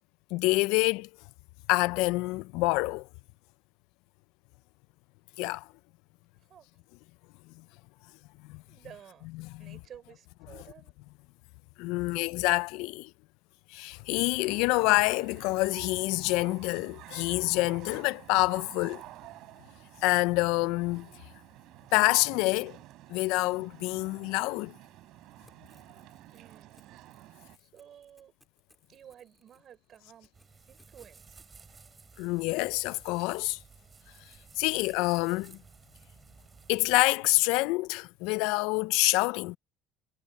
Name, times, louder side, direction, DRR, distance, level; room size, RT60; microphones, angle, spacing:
voice 1, 0.3-1.1 1.7-3.1 5.4-5.7 7.6-7.7 8.4-8.6 9.4-9.8 11.8-13.1 13.7-19.0 20.0-21.1 21.9-22.8 23.1-24.7 32.2-33.6 34.6-35.6 36.7-39.6, left 23 dB, 70° left, 0.3 m, -27 dB
voice 2, 6.3-6.7 8.7-9.3 9.6-10.9 26.3-27.1 27.6-28.3 28.9-30.4 30.7-31.4, right 9 dB, 35° right, 6.0 m, -53 dB
sound 1, 14.3-27.6, right 16 dB, 55° right, 3.4 m, -51 dB
Crackle / Tearing, 25.1-31.5, left 1 dB, 5° left, 2.6 m, -67 dB
sound 2, 30.3-37.0, right 5 dB, 20° right, 4.7 m, -55 dB
cardioid pair, 150°, 0 cm